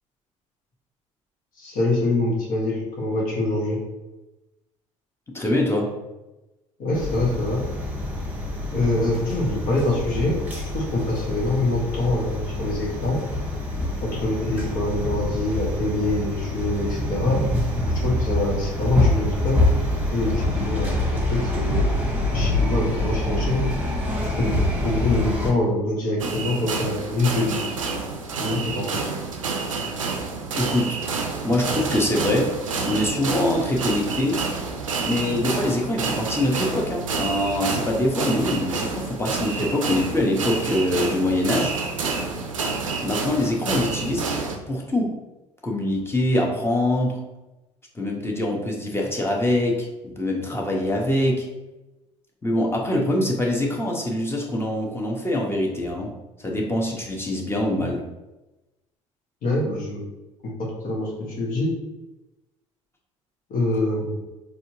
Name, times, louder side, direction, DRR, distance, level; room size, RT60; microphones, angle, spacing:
voice 1, 1.6-3.8 6.8-7.6 8.7-10.3 10.7-13.2 14.0-17.4 18.0-19.6 20.1-21.9 22.3-23.7 24.4-27.6 28.4-29.0 59.4-60.0 60.4-61.7 63.5-64.1, left 2 dB, 55° left, -3 dB, 1.5 m, -25 dB
voice 2, 5.3-5.9 30.5-31.0 31.4-32.5 32.8-34.4 35.0-41.7 43.0-44.2 44.7-45.2 45.6-47.2 47.9-51.5 52.4-56.1 56.4-58.0, left 1 dB, 15° left, 0 dB, 1.1 m, -24 dB
sound 1, 6.9-25.5, left 1 dB, 10° right, 1.5 m, -26 dB
sound 2, 26.2-44.6, right 4 dB, 85° right, 0.5 m, -28 dB
4.2 x 3.4 x 2.8 m, 1.0 s
figure-of-eight pair, 55°, 17 cm